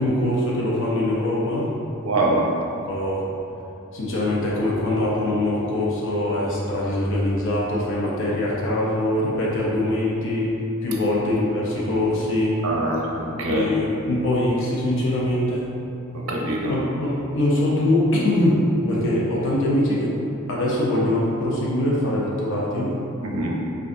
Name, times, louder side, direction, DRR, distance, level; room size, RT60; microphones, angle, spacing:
voice 1, 0.0-1.7 2.9-3.3 3.9-10.5 10.8-12.6 13.5-15.7 16.7-20.2 20.5-22.9, left 1 dB, 65° left, -5 dB, 0.6 m, -23 dB
voice 2, 2.0-2.4 12.6-13.0 13.4-13.7 16.1-16.7 23.2-23.5, right 2 dB, 85° right, -2 dB, 0.6 m, -23 dB
5.0 x 2.3 x 2.5 m, 2.9 s
head